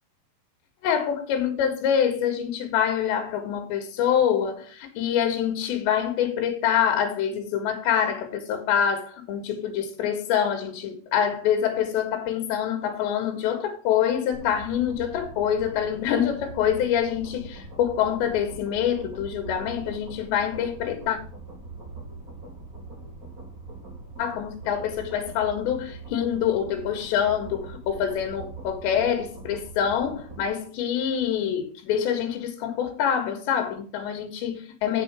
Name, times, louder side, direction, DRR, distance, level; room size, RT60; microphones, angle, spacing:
voice 1, 0.8-21.2 24.2-35.0, left 9 dB, 80° left, 3.9 m, -25 dB
sound 1, 14.3-30.5, right 3 dB, 20° right, 3.4 m, -42 dB
8.2 x 7.3 x 6.2 m
omnidirectional pair, 5.0 m